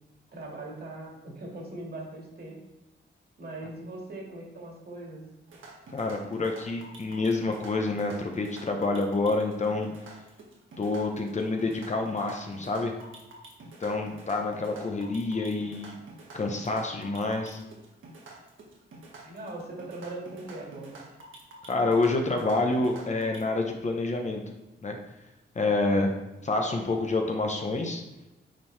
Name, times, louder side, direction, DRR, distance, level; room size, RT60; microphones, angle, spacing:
voice 1, 0.3-2.6 3.4-5.2 14.5-14.7 19.0-21.0, right 2 dB, 55° right, -2 dB, 2.0 m, -40 dB
sound 1, 5.5-23.4, right 2 dB, 90° right, 1.4 m, -48 dB
voice 2, 5.9-9.9 10.8-12.9 13.8-16.0 16.3-17.6 21.7-24.4 24.8-25.0 25.5-26.1 26.4-28.0, left 3 dB, 35° left, 2 dB, 0.8 m, -28 dB
9.1 x 4.5 x 3.3 m, 1.0 s
wide cardioid pair, 140°, 20 cm